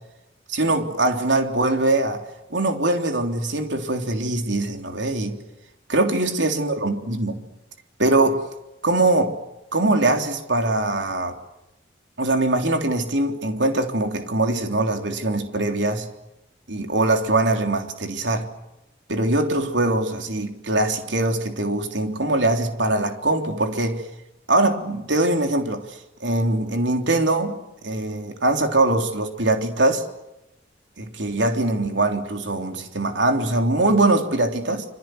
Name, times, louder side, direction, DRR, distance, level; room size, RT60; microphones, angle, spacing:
voice 1, 0.5-2.2 2.5-5.4 5.9-7.4 8.0-8.4 8.8-9.3 9.7-11.4 12.2-16.1 16.7-18.5 19.1-24.0 24.5-27.5 27.8-30.0 31.0-34.8, right 2 dB, 75° right, 5 dB, 3.5 m, -22 dB
27.0 x 26.0 x 7.9 m, 0.90 s
head